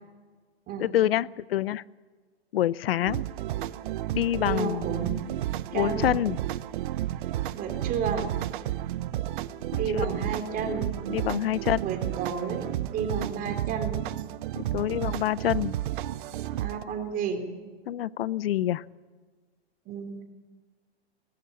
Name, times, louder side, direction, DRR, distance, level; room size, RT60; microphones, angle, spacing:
voice 1, 0.8-1.8 2.5-3.2 4.1-4.9 5.7-6.4 9.7-10.1 11.1-11.8 14.6-15.7 17.9-18.8, left 12 dB, 60° left, 21 dB, 0.7 m, -26 dB
sound 1, 3.1-16.8, right 13 dB, 50° right, 0.8 m, -32 dB
voice 2, 4.4-5.2 5.7-6.1 7.5-8.3 9.8-10.9 11.8-12.7 12.9-14.0 16.6-17.5 19.9-20.2, right 5 dB, 25° right, 5 dB, 3.6 m, -31 dB
19.5 x 16.0 x 10.0 m, 1.4 s
hypercardioid pair, 130°, 33 cm